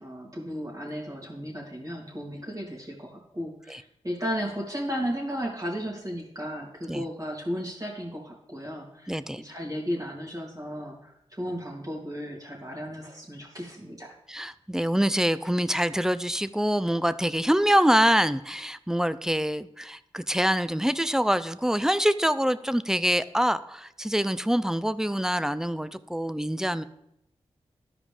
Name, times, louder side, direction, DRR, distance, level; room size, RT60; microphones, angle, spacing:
voice 1, 0.0-14.1, equal, 30° right, -2 dB, 2.8 m, -34 dB
voice 2, 9.1-9.4 14.3-26.8, equal, 5° right, 14 dB, 0.4 m, -25 dB
12.5 x 4.9 x 3.5 m, 0.81 s
cardioid pair, 40°, 12 cm